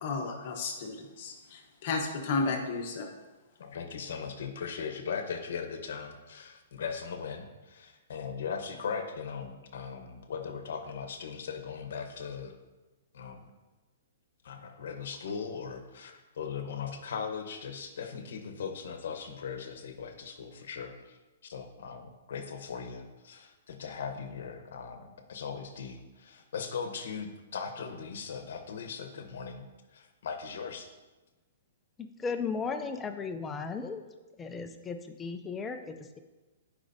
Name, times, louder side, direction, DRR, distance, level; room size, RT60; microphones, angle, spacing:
voice 1, 0.0-3.1, left 4 dB, 35° left, 2 dB, 0.9 m, -33 dB
voice 2, 3.6-12.5 13.1-13.5 14.4-21.2 21.4-29.6 29.9-30.9, left 6 dB, 60° left, 6 dB, 0.9 m, -39 dB
voice 3, 32.2-34.0 34.4-36.2, left 5 dB, 10° left, 7 dB, 0.3 m, -35 dB
10.0 x 5.0 x 2.6 m, 1.2 s
hypercardioid pair, 170°, 0 cm